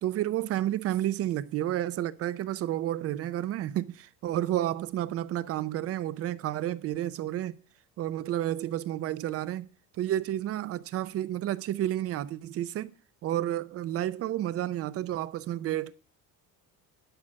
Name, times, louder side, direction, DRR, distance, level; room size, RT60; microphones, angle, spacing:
voice 1, 0.0-7.5 8.0-9.7 10.0-12.9 13.2-15.9, right 13 dB, 40° right, 0.6 m, -31 dB
11.5 x 6.0 x 6.3 m
cardioid pair, 165°, 35 cm